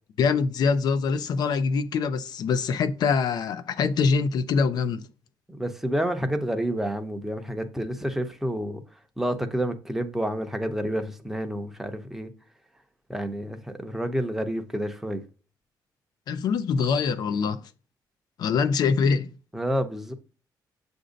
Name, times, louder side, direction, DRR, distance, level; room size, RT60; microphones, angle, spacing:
voice 1, 0.2-5.1 16.3-17.6 18.4-19.3, left 5 dB, 65° left, 0.5 m, -24 dB
voice 2, 5.5-8.8 9.2-12.3 13.1-15.2 19.5-20.1, equal, 5° right, 0.8 m, -29 dB
7.5 x 2.7 x 5.0 m
cardioid pair, 130°, 7 cm